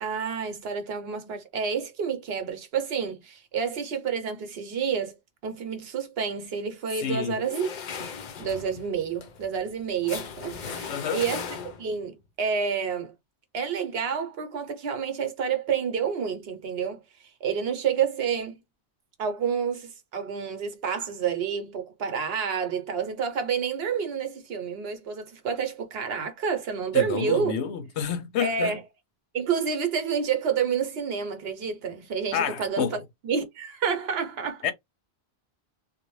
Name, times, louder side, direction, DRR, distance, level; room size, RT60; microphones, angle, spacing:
voice 1, 0.0-5.1 5.4-7.7 8.0-8.1 8.4-11.5 11.8-13.1 13.5-17.0 17.4-18.6 19.2-27.6 28.4-28.8 29.3-34.6, right 7 dB, 70° right, 0.9 m, -29 dB
voice 2, 7.0-7.4 10.9-11.2 26.9-28.8 32.3-32.9 34.6-34.7, left 8 dB, 85° left, 0.9 m, -29 dB
sound 1, 7.4-12.0, left 6 dB, 55° left, 0.6 m, -38 dB
2.5 x 2.0 x 3.0 m
omnidirectional pair, 1.1 m